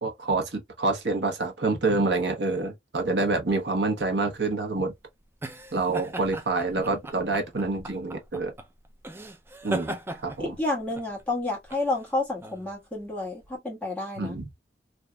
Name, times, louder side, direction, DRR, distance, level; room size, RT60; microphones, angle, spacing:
voice 1, 0.0-4.9 5.7-8.5 9.6-10.0 10.2-10.5 14.2-14.5, right 3 dB, 70° right, 1.0 m, -27 dB
sound 1, 4.4-13.5, right 1 dB, 15° right, 0.4 m, -39 dB
voice 2, 10.4-14.4, left 2 dB, 10° left, 1.5 m, -30 dB
3.4 x 2.5 x 2.2 m
head